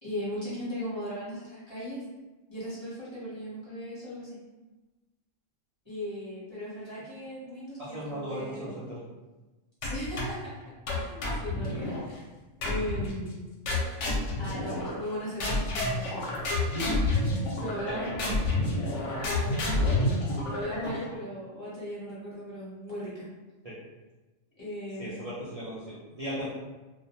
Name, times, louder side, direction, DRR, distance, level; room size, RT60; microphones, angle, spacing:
voice 1, 0.0-2.0 2.5-4.4 5.8-8.8 9.8-10.5 10.9-12.2 12.6-13.4 14.4-16.2 16.7-18.4 18.9-19.8 20.5-23.3 24.6-25.3, equal, 25° left, -10 dB, 0.9 m, -38 dB
voice 2, 7.8-9.0 17.9-18.4 23.6-23.7 25.0-26.5, equal, 70° right, -9 dB, 0.3 m, -37 dB
sound 1, 9.8-10.5 10.9-12.0 12.6-13.2 13.7-15.1 15.4-21.1, left 2 dB, 70° left, 0.9 m, -29 dB
2.4 x 2.1 x 2.8 m, 1.2 s
omnidirectional pair, 1.3 m